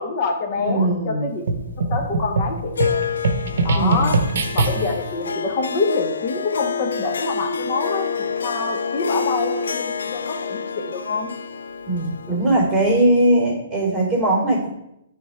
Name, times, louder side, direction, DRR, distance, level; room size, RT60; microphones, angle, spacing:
voice 1, 0.0-1.4 1.9-3.1 3.6-4.2 4.5-11.3, left 4 dB, 35° left, 3 dB, 1.2 m, -26 dB
voice 2, 0.5-1.3 3.7-4.2 11.8-14.7, right 1 dB, 5° left, -14 dB, 3.1 m, -20 dB
sound 1, 1.5-5.1, right 3 dB, 70° right, 0.7 m, -23 dB
Harp, 2.8-13.3, left 6 dB, 85° left, 0.4 m, -28 dB
10.0 x 3.6 x 4.4 m, 0.85 s
hypercardioid pair, 155°, 0 cm